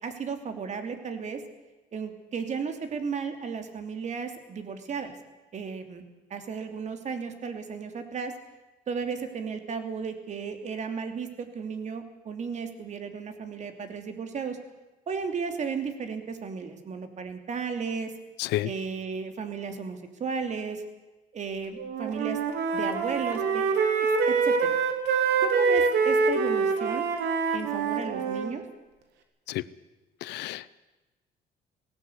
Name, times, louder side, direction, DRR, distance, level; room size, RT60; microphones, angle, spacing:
voice 1, 0.0-1.4 1.9-5.1 5.5-6.0 6.3-8.3 8.9-14.6 15.1-18.1 18.6-20.8 21.3-22.4 22.7-23.6 24.0-24.8 25.4-27.1 27.5-28.6, right 5 dB, 45° right, 7 dB, 3.0 m, -34 dB
Wind instrument woodwind instrument, 21.8-28.5, right 5 dB, 80° right, 2.8 m, -25 dB
voice 2, 30.2-30.8, left 16 dB, 85° left, 18 dB, 0.8 m, -30 dB
18.5 x 17.5 x 8.3 m, 1.1 s
cardioid pair, 110°, 17 cm